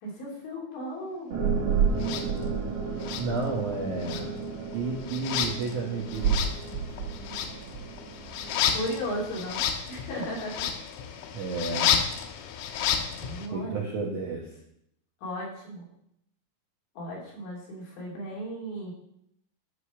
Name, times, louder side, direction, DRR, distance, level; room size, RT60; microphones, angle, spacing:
voice 1, 0.0-1.3 8.7-10.7 13.2-14.0 15.2-15.8 17.0-18.9, equal, 60° left, -3 dB, 4.9 m, -35 dB
sound 1, 1.3-9.3, right 6 dB, 65° right, 2.0 m, -31 dB
sound 2, 2.0-2.3 3.0-13.5, left 8 dB, 80° left, 3.1 m, -31 dB
voice 2, 3.2-4.3 4.7-6.5 11.3-12.0 13.5-14.5, right 3 dB, 85° right, -2 dB, 1.7 m, -31 dB
12.5 x 4.9 x 6.1 m, 0.72 s
omnidirectional pair, 5.9 m